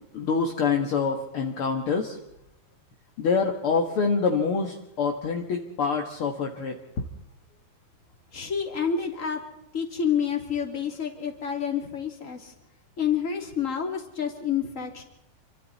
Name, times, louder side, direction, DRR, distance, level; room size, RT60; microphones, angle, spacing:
voice 1, 0.1-2.2 3.2-6.7, left 5 dB, 50° left, 2 dB, 1.7 m, -26 dB
voice 2, 8.3-9.4 9.7-12.5 13.0-15.0, left 7 dB, 20° left, 2 dB, 2.6 m, -28 dB
28.0 x 25.5 x 4.2 m, 0.85 s
omnidirectional pair, 4.6 m